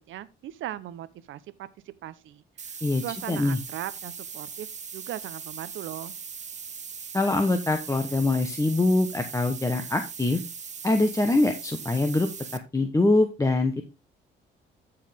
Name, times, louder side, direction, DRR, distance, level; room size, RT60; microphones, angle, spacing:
voice 1, 0.1-1.7 2.0-2.4 3.0-4.7 4.9-6.1, right 12 dB, 80° right, 0.8 m, -38 dB
sound 1, 2.6-12.6, right 6 dB, 35° right, 1.1 m, -40 dB
voice 2, 2.8-3.6 7.1-10.4 10.8-12.3 12.7-13.8, left 2 dB, 15° left, 1.1 m, -24 dB
14.0 x 4.8 x 3.6 m
cardioid pair, 90°, 20 cm